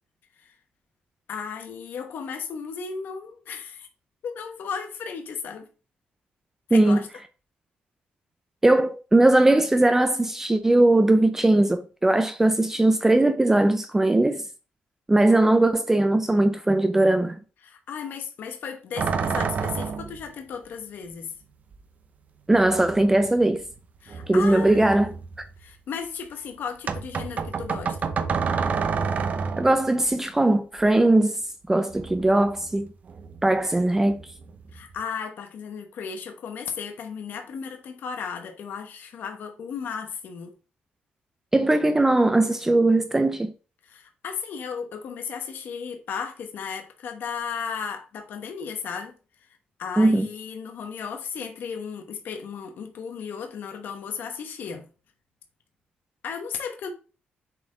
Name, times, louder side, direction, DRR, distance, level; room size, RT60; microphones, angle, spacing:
voice 1, 1.3-3.9 4.2-5.7 6.7-7.1 17.6-21.3 24.0-25.1 25.6-28.1 34.7-40.5 43.8-49.2 49.8-54.8 56.2-56.9, left 6 dB, 60° left, 1.1 m, -35 dB
voice 2, 6.7-7.0 8.6-14.4 15.1-17.4 22.5-23.6 24.3-25.1 29.6-31.4 31.7-32.9 33.4-34.2 41.5-43.5 50.0-50.3, right 2 dB, 10° right, 0.5 m, -19 dB
sound 1, 19.0-20.2 21.7-21.8 22.5-23.7 24.1-25.6 26.9-29.9 31.9-32.8 33.1-33.6 34.0-35.0, right 5 dB, 45° right, 0.7 m, -29 dB
6.9 x 4.2 x 3.8 m
cardioid pair, 125°, 4 cm